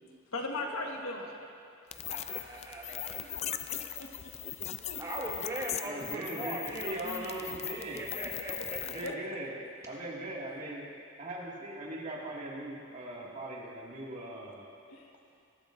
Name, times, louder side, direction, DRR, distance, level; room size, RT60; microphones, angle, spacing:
voice 1, 0.3-1.4 3.2-4.1 4.6-5.0 9.0-9.4 14.9-15.1, left 2 dB, 80° left, 1 dB, 1.4 m, -39 dB
sound 1, 1.9-9.1, left 10 dB, 30° left, 0.3 m, -39 dB
voice 2, 1.9-3.3 5.0-7.5 7.9-9.2, right 1 dB, 15° right, -4 dB, 1.8 m, -40 dB
voice 3, 5.8-8.1 8.8-9.6 9.9-10.9 11.2-14.7, right 1 dB, 35° right, -4 dB, 2.1 m, -40 dB
20.5 x 12.0 x 2.6 m, 2.4 s
head